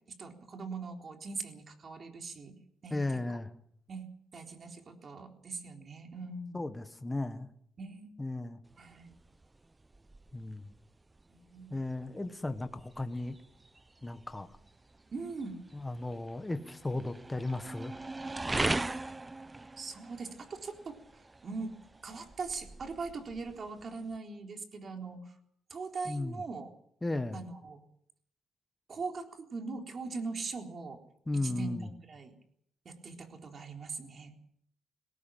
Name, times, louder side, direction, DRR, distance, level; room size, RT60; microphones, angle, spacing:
voice 1, 0.0-3.4 3.9-4.1 4.3-6.6 7.8-8.1 8.8-9.1 11.3-11.7 15.1-15.6 19.8-21.7 22.0-25.3 25.7-26.7 27.3-27.8 28.9-31.0 31.3-32.3 32.9-34.3, right 4 dB, 45° right, 4 dB, 3.9 m, -41 dB
voice 2, 2.9-3.5 6.5-7.5 8.2-8.6 10.3-10.7 11.7-13.4 14.0-14.5 15.7-18.0 26.0-26.4 27.0-27.4 31.3-31.9, left 2 dB, 15° left, 9 dB, 1.5 m, -35 dB
sound 1, 8.6-24.2, right 2 dB, 20° right, 0.7 m, -41 dB
19.5 x 17.5 x 7.6 m, 0.69 s
cardioid pair, 90°, 0 cm